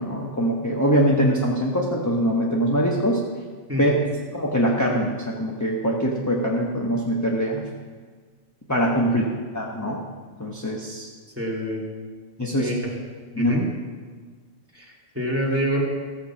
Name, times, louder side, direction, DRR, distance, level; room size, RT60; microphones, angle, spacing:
voice 1, 0.0-3.3 3.8-4.0 4.3-7.7 8.7-9.2 9.5-10.0 10.4-11.1 12.4-12.7 13.3-13.6, equal, 15° left, -2 dB, 1.0 m, -23 dB
voice 2, 11.4-11.9 12.6-13.0 13.4-13.7 14.7-15.8, equal, 10° right, -4 dB, 2.3 m, -27 dB
14.5 x 6.5 x 7.2 m, 1.5 s
omnidirectional pair, 1.4 m